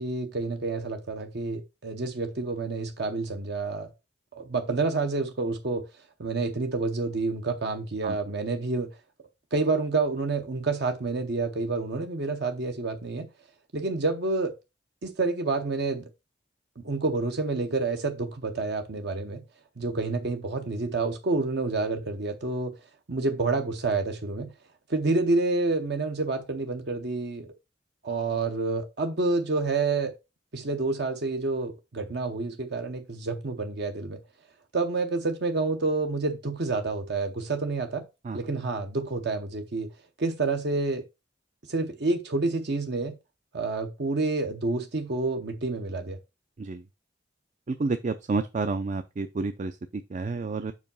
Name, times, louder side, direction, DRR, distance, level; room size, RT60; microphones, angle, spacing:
voice 1, 0.0-3.9 4.3-5.8 6.2-9.0 9.5-13.3 13.7-14.5 15.0-16.1 16.8-19.4 19.8-22.8 23.1-24.5 24.9-27.5 28.0-30.1 30.5-34.2 34.7-38.0 38.3-39.9 40.2-41.1 41.7-43.2 43.5-46.2, right 3 dB, 60° right, 0.8 m, -28 dB
voice 2, 47.7-50.7, right 3 dB, 40° right, 0.4 m, -30 dB
5.4 x 4.9 x 5.3 m
head